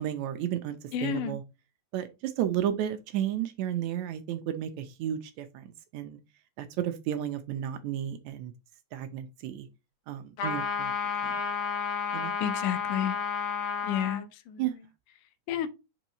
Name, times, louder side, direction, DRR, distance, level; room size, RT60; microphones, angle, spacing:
voice 1, 0.0-1.4 1.9-6.2 6.6-8.5 8.9-9.7 10.1-10.9 11.2-11.4 12.1-12.3 14.6-14.7, right 10 dB, 75° right, 1.8 m, -33 dB
voice 2, 0.9-1.4 12.4-13.1 13.8-14.6 15.5-15.7, left 10 dB, 90° left, 2.3 m, -31 dB
sound 1, 10.4-14.2, left 5 dB, 65° left, 2.1 m, -31 dB
5.4 x 4.6 x 3.9 m
omnidirectional pair, 3.6 m